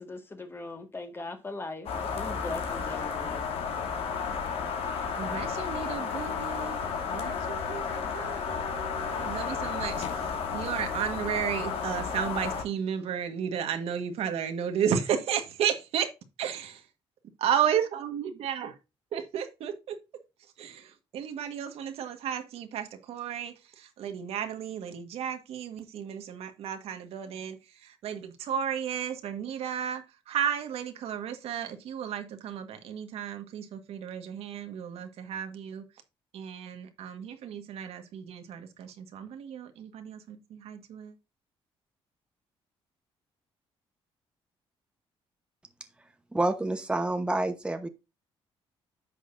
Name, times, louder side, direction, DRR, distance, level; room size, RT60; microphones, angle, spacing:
voice 1, 0.0-3.4, left 2 dB, 25° left, 1.8 m, -40 dB
sound 1, 1.9-12.6, left 6 dB, 75° left, 2.5 m, -32 dB
voice 2, 5.2-6.8 7.1-16.1 16.4-16.8 17.4-18.8 19.1-20.0 20.4-35.8 36.3-41.1, right 8 dB, 80° right, 1.5 m, -33 dB
voice 3, 46.3-47.9, right 2 dB, 10° right, 1.0 m, -28 dB
10.0 x 6.4 x 2.6 m
cardioid pair, 115°, 10 cm